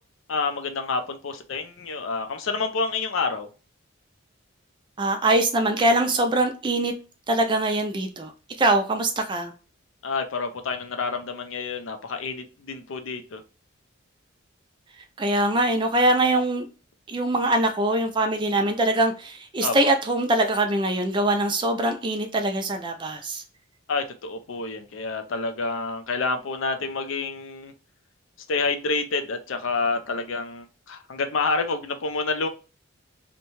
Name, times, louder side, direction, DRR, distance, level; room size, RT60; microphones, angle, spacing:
voice 1, 0.3-3.5 10.0-13.4 19.6-19.8 23.9-27.7 28.5-32.5, left 4 dB, 70° left, 0.5 m, -28 dB
voice 2, 5.0-6.9 7.3-8.3 8.6-9.5 15.2-16.7 17.1-23.4, right 1 dB, 20° right, 0.3 m, -23 dB
2.7 x 2.2 x 2.9 m
head